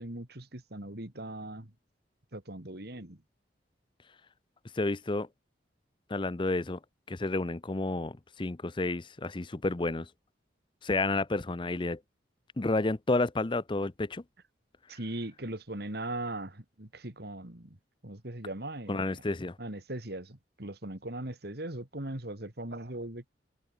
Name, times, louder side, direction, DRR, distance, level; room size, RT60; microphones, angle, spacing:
voice 1, 0.0-1.7 2.3-3.2 14.9-17.8 18.0-19.1 19.6-23.3, right 1 dB, 55° right, 2.8 m, -39 dB
voice 2, 4.7-5.3 6.1-6.8 7.1-10.1 10.8-12.0 12.6-14.2 18.9-19.6, left 2 dB, 25° left, 0.6 m, -30 dB
head